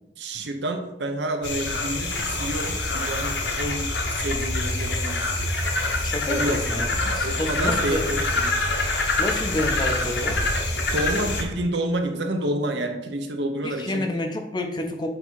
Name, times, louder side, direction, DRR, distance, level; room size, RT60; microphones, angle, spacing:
voice 1, 0.2-5.4 6.3-6.8 7.2-8.6 10.9-14.1, right 1 dB, 75° right, 5 dB, 0.8 m, -29 dB
sound 1, 1.4-11.4, left 2 dB, 75° left, 1.0 m, -25 dB
voice 2, 6.0-8.1 9.2-10.4 13.6-15.1, left 1 dB, 25° left, 5 dB, 0.4 m, -29 dB
7.8 x 2.8 x 4.5 m, 0.95 s
head